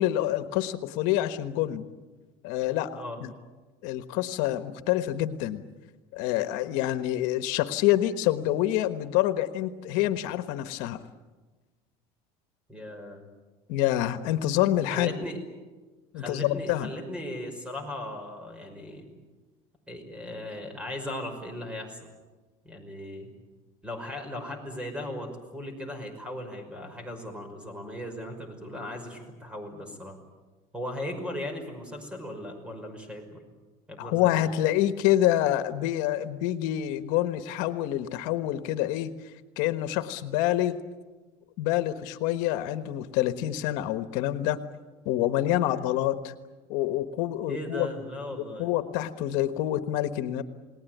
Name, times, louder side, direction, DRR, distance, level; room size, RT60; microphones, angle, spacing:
voice 1, 0.0-1.9 2.4-3.3 3.8-5.6 6.1-11.0 13.7-15.1 16.1-16.9 34.0-39.1 39.6-40.8 41.6-44.6 45.0-46.3 46.7-47.9 48.3-50.4, left 13 dB, 75° left, 11 dB, 1.3 m, -27 dB
voice 2, 12.7-13.2 14.9-15.4 16.1-19.1 19.9-22.0 22.6-23.3 23.8-30.2 30.7-33.4 33.9-34.6 47.5-48.7, left 1 dB, 10° right, 6 dB, 5.6 m, -37 dB
29.0 x 19.5 x 9.3 m, 1.3 s
cardioid pair, 135°, 13 cm